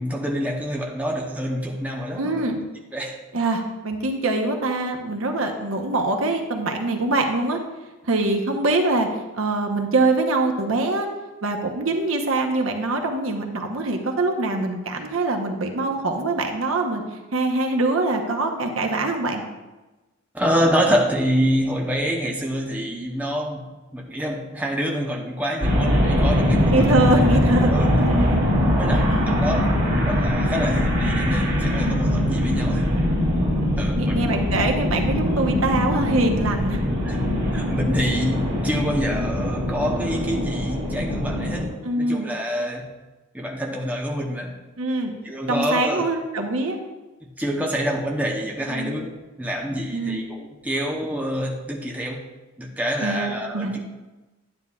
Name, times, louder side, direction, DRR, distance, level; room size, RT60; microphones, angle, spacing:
voice 1, 0.0-2.5 2.9-3.2 20.3-27.0 27.3-27.4 27.7-28.2 28.8-33.0 33.8-34.3 37.0-42.9 43.3-44.6 45.2-46.1 47.2-52.2 52.6-53.9, equal, 5° right, -1 dB, 0.8 m, -27 dB
voice 2, 2.2-2.6 3.3-7.6 8.0-9.1 9.4-11.1 11.4-17.0 17.3-19.4 26.7-27.7 28.0-28.4 28.9-29.3 31.8-32.1 33.9-36.8 41.8-42.3 44.8-45.1 45.5-46.8 48.7-48.9 49.9-50.2 53.0-53.7, right 2 dB, 85° right, 3 dB, 1.0 m, -24 dB
sound 1, 25.6-41.6, left 1 dB, 45° right, 2.5 m, -22 dB
9.6 x 9.6 x 2.4 m, 1.1 s
head